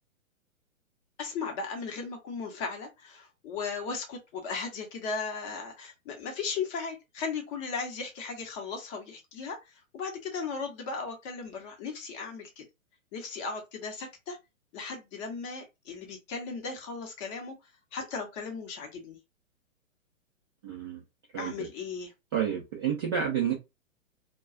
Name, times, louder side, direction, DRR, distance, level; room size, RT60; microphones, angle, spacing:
voice 1, 1.2-12.6 13.1-14.4 14.7-17.5 17.9-19.2 21.3-22.1, left 5 dB, 25° left, 0.8 m, -36 dB
voice 2, 20.6-21.0 21.3-21.5 22.3-23.5, right 8 dB, 20° right, 0.4 m, -29 dB
2.3 x 2.2 x 3.7 m
figure-of-eight pair, 120°, 41 cm